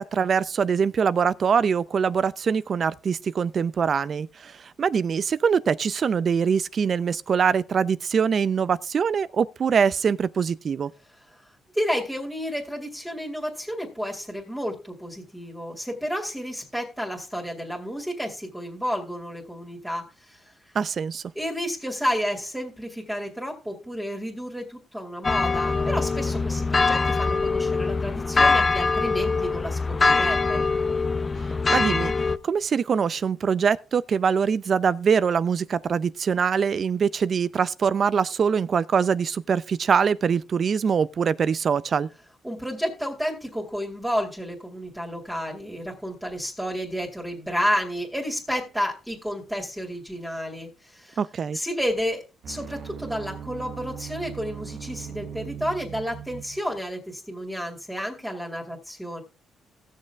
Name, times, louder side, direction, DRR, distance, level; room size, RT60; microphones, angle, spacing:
voice 1, 0.0-10.9 20.7-21.2 31.7-32.1 32.4-42.1 51.2-51.6, right 6 dB, 50° right, 0.5 m, -23 dB
voice 2, 11.7-20.5 21.4-30.6 42.4-51.2 51.5-59.2, equal, 10° right, 2.5 m, -31 dB
sound 1, 25.2-32.4, left 4 dB, 30° left, 0.6 m, -23 dB
sound 2, 52.4-56.8, right 8 dB, 65° right, 1.1 m, -39 dB
16.5 x 6.5 x 3.5 m
cardioid pair, 90°, 0 cm